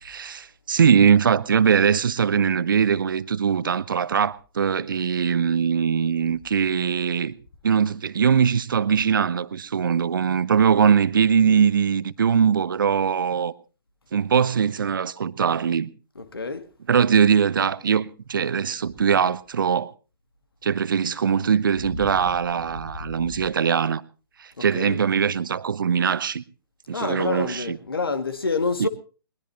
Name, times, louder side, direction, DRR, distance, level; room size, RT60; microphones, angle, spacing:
voice 1, 0.0-7.4 7.6-13.5 14.1-15.9 16.9-19.9 20.6-24.0 24.4-26.4 26.9-27.8 28.8-28.9, right 7 dB, 60° right, 0.9 m, -21 dB
voice 2, 16.2-16.6 22.0-22.1 24.6-25.0 26.9-28.9, left 4 dB, 70° left, 2.2 m, -27 dB
21.5 x 20.0 x 2.9 m
figure-of-eight pair, 125°, 13 cm